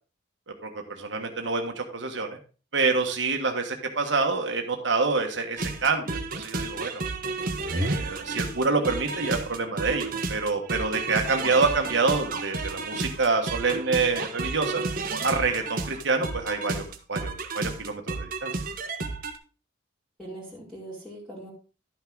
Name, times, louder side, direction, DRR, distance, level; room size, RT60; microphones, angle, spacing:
voice 1, 0.6-2.4 2.7-7.0 7.7-14.8 15.2-16.8 17.1-18.5, right 4 dB, 65° right, 3 dB, 1.4 m, -27 dB
sound 1, 5.6-19.4, right 3 dB, 45° right, 1.2 m, -32 dB
voice 2, 20.2-21.5, right 1 dB, ahead, -7 dB, 2.3 m, -41 dB
12.0 x 5.9 x 3.8 m, 0.36 s
head